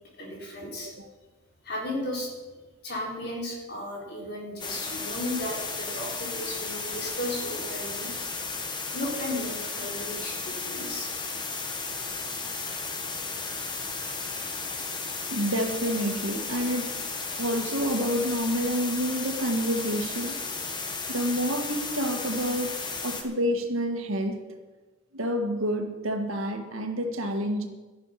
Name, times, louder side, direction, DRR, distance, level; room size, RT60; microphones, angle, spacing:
voice 1, 0.1-0.9 1.6-2.5 2.8-8.1 8.9-11.1 12.6-12.7, left 1 dB, 50° left, -3 dB, 4.2 m, -35 dB
sound 1, 4.6-23.2, left 4 dB, 20° left, 1.2 m, -34 dB
voice 2, 15.3-17.1 17.4-20.4 21.1-22.7 23.0-24.4 25.1-27.7, equal, 80° right, 4 dB, 1.8 m, -28 dB
12.5 x 11.0 x 5.9 m, 1.2 s
head